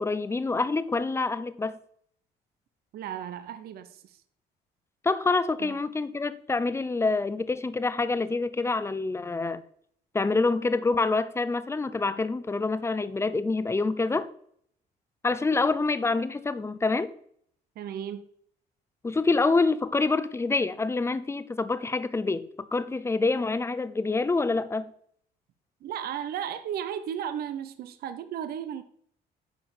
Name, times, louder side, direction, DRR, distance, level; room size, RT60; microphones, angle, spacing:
voice 1, 0.0-1.8 5.0-9.6 10.1-14.3 15.2-17.1 19.0-24.9, left 3 dB, 15° left, 0.8 m, -26 dB
voice 2, 2.9-4.2 5.6-5.8 17.8-18.2 25.8-28.8, right 9 dB, 65° right, 0.9 m, -35 dB
9.7 x 5.8 x 7.3 m
cardioid pair, 110°, 17 cm